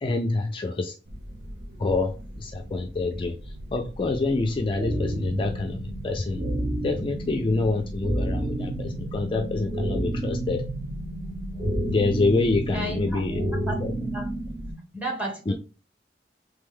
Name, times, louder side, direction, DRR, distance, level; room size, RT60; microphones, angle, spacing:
voice 1, 0.0-0.9 1.8-6.4 6.8-10.7 11.9-13.4 13.8-13.9 15.5-15.6, left 3 dB, 30° left, 0.4 m, -27 dB
sound 1, 1.0-14.7, equal, 70° right, 1.1 m, -40 dB
sound 2, 4.8-14.8, right 1 dB, 30° right, 1.7 m, -31 dB
voice 2, 12.7-14.4 14.9-15.5, right 1 dB, 10° right, 1.4 m, -33 dB
3.3 x 3.3 x 3.5 m
head